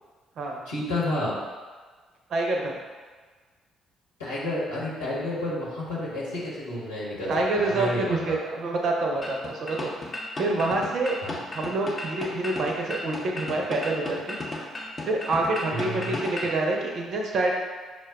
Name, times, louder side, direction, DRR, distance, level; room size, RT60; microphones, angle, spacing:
voice 1, 0.6-1.4 4.2-8.4 11.2-11.4 15.7-16.1, left 1 dB, 85° left, -8 dB, 1.0 m, -30 dB
voice 2, 2.3-2.8 7.3-9.9 10.4-11.2 11.5-14.4 15.1-17.6, right 2 dB, 55° right, 0 dB, 0.6 m, -27 dB
sound 1, 9.2-16.6, left 2 dB, 35° left, 0.7 m, -35 dB
6.0 x 2.3 x 2.3 m, 1.4 s
figure-of-eight pair, 45°, 0 cm